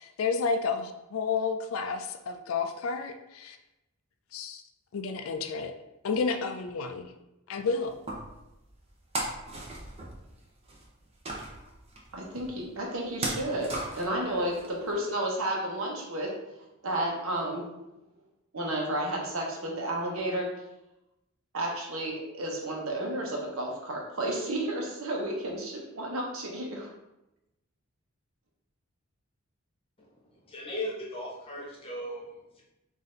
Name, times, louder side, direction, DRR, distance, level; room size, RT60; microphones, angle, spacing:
voice 1, 0.0-3.6 4.3-4.6 4.9-5.7 6.0-7.1 7.5-8.0, left 5 dB, 75° left, 8 dB, 0.4 m, -31 dB
sound 1, 7.8-14.9, right 2 dB, 30° right, 0.6 m, -37 dB
voice 2, 12.1-16.3 16.8-17.7 18.5-20.5 21.5-26.9, right 1 dB, 75° right, -1 dB, 1.0 m, -32 dB
voice 3, 30.3-32.6, left 1 dB, 25° left, -4 dB, 1.0 m, -38 dB
4.0 x 2.7 x 3.8 m, 0.93 s
head